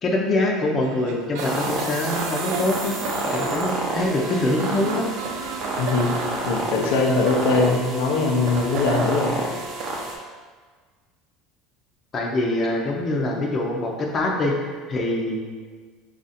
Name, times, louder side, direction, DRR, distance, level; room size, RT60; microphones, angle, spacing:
voice 1, 0.0-2.9 3.2-5.1 12.1-15.4, left 2 dB, 25° left, -1 dB, 0.6 m, -24 dB
sound 1, 0.8-6.5, right 4 dB, 80° right, 0.4 m, -35 dB
sound 2, 1.4-10.1, right 2 dB, 45° right, 0.7 m, -29 dB
voice 2, 5.8-6.1 6.4-9.4, left 3 dB, 85° left, 1 dB, 0.6 m, -21 dB
4.1 x 2.5 x 4.1 m, 1.5 s
cardioid pair, 150°, 0 cm